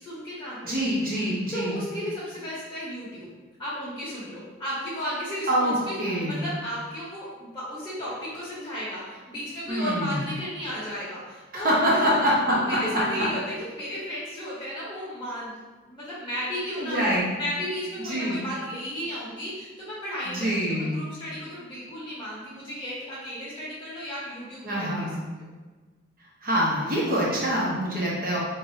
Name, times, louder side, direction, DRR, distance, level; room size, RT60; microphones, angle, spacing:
voice 1, 0.0-0.9 1.5-3.3 3.6-12.2 12.5-15.5 15.8-25.1, equal, 20° left, -9 dB, 1.0 m, -34 dB
voice 2, 0.6-1.8 5.5-6.5 9.7-10.2 11.5-13.0 16.8-17.3 18.0-18.4 20.2-21.0 24.6-25.2 26.4-28.4, equal, 45° right, -6 dB, 1.2 m, -25 dB
4.3 x 2.6 x 2.8 m, 1.3 s
head